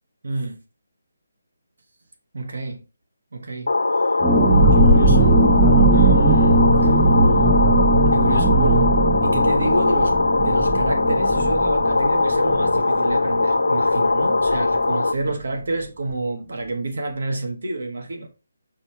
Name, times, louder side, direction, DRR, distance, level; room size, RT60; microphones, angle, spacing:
voice 1, 0.2-0.6 2.3-2.8 3.3-3.7 4.7-5.3 5.9-7.0 7.4-7.5 8.1-18.3, right 2 dB, 70° right, 1.4 m, -29 dB
sound 1, 3.7-15.1, left 3 dB, 85° left, 0.3 m, -20 dB
sound 2, 4.2-13.6 13.9-14.0 14.3-14.6, right 2 dB, 5° right, 0.6 m, -18 dB
5.4 x 3.4 x 2.9 m
figure-of-eight pair, 160°, 0 cm